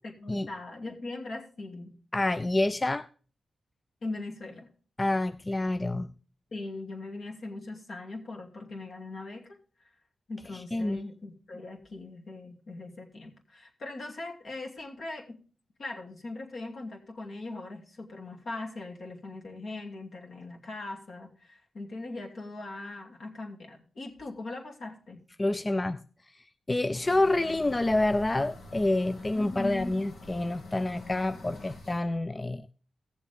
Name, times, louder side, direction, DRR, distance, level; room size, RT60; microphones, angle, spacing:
voice 1, 0.0-2.0 4.0-4.7 6.5-9.6 10.3-15.4 15.8-25.2 29.3-29.9, left 2 dB, 65° left, 2.5 m, -40 dB
voice 2, 2.1-3.1 5.0-6.1 10.5-11.0 25.4-26.0 26.4-32.7, left 2 dB, 25° left, 0.4 m, -28 dB
sound 1, 27.0-32.0, left 2 dB, 80° left, 2.3 m, -46 dB
16.5 x 7.1 x 3.4 m
cardioid pair, 60°, 0 cm